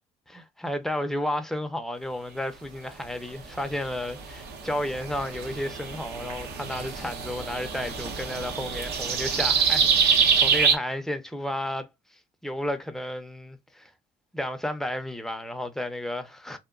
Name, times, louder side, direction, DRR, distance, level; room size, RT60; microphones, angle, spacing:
voice 1, 0.3-11.9 12.4-13.9 14.3-16.6, left 1 dB, ahead, 0.5 m, -32 dB
sound 1, 4.0-10.7, right 6 dB, 75° right, 0.8 m, -25 dB
2.9 x 2.0 x 2.3 m
cardioid pair, 110°, 17 cm